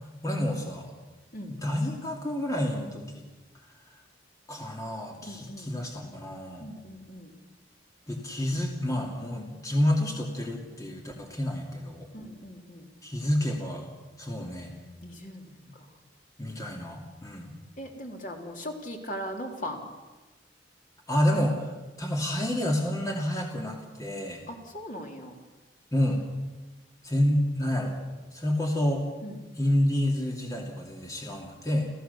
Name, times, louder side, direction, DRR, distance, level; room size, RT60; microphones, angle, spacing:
voice 1, 0.0-0.9 1.6-3.2 4.5-6.7 8.1-12.1 13.0-13.9 14.2-14.7 16.4-17.5 21.1-21.7 22.0-24.4 25.9-26.2 27.0-28.0 28.3-29.1 29.6-31.9, left 1 dB, 20° left, 0 dB, 2.6 m, -29 dB
voice 2, 5.2-5.7 6.6-7.3 12.1-12.9 15.0-15.9 17.8-19.8 24.5-25.3 29.2-29.4, equal, 45° left, 2 dB, 3.2 m, -39 dB
30.0 x 15.0 x 7.0 m, 1.2 s
head